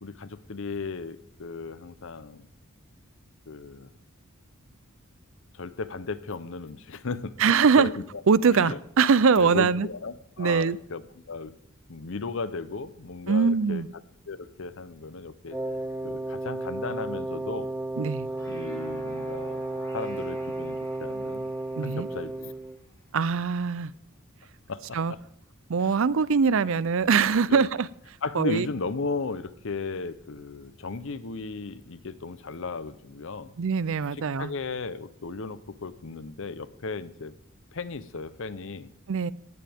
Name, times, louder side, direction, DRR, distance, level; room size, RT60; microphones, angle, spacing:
voice 1, 0.0-2.5 3.5-3.9 5.5-7.4 7.8-7.9 8.5-8.8 9.4-11.6 11.9-13.8 14.3-15.6 16.0-17.7 18.5-19.6 19.9-20.7 21.0-21.5 21.8-22.5 24.7-25.2 25.8-26.0 27.5-27.7 28.2-33.5 34.4-37.3 37.7-38.9, left 4 dB, 65° left, 15 dB, 0.8 m, -35 dB
voice 2, 7.4-7.9 8.3-9.9 10.4-10.8 13.3-13.9 18.0-18.3 21.8-22.1 23.1-23.9 24.9-25.1 25.7-27.9 28.3-28.7 33.6-34.5 39.1-39.3, right 5 dB, 65° right, 19 dB, 0.5 m, -22 dB
Wind instrument woodwind instrument, 15.5-22.8, right 2 dB, 10° right, 0.7 m, -33 dB
sound 1, 18.1-23.6, equal, 10° left, 7.2 m, -51 dB
18.0 x 15.0 x 3.6 m, 0.70 s
head